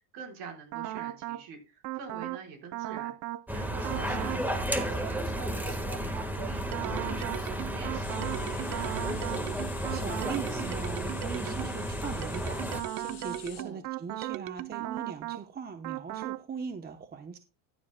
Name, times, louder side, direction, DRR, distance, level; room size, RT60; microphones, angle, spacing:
voice 1, 0.0-3.1 3.5-9.0 13.6-13.8, right 5 dB, 60° right, 1 dB, 4.7 m, -45 dB
sound 1, 0.7-1.4 1.8-2.4 2.7-3.4 3.8-4.4 4.7-11.8 12.2-15.4 15.8-16.4, right 16 dB, 40° right, 0.6 m, -37 dB
sound 2, 3.5-12.8, equal, 5° right, 1.5 m, -33 dB
sound 3, 8.0-13.6, left 11 dB, 45° left, 2.1 m, -48 dB
voice 2, 9.9-17.4, right 6 dB, 20° right, 8 dB, 0.9 m, -40 dB
14.5 x 9.9 x 2.2 m, 0.29 s
supercardioid pair, 125°, 47 cm